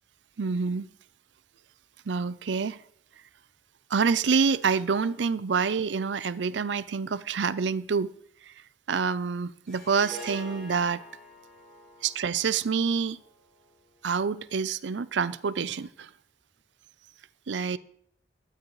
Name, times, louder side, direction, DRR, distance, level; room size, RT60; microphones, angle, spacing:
voice 1, 0.4-0.9 2.1-2.8 3.9-8.1 8.5-8.6 8.9-11.0 12.0-13.2 14.0-16.1 17.5-17.8, right 5 dB, 80° right, 0.5 m, -27 dB
Harp, 9.7-14.1, right 1 dB, 5° left, 7.1 m, -46 dB
17.0 x 12.0 x 3.1 m
head